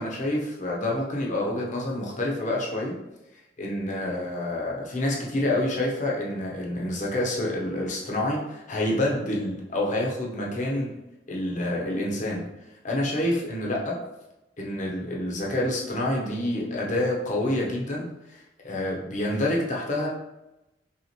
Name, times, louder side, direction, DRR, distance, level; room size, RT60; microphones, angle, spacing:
voice 1, 0.0-2.9 3.6-10.9 11.3-12.5 12.8-14.0 14.6-20.1, left 1 dB, 45° left, -2 dB, 0.9 m, -28 dB
5.5 x 2.5 x 2.9 m, 0.95 s
head